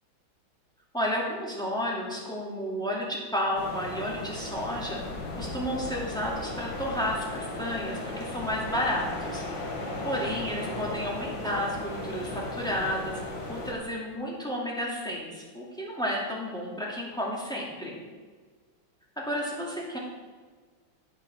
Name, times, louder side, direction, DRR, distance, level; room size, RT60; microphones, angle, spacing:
voice 1, 0.9-5.0 5.3-9.4 10.0-18.0 19.2-20.0, equal, ahead, -4 dB, 2.4 m, -32 dB
sound 1, 3.5-13.7, left 2 dB, 70° left, 2.8 m, -36 dB
9.3 x 9.0 x 6.3 m, 1.5 s
omnidirectional pair, 2.1 m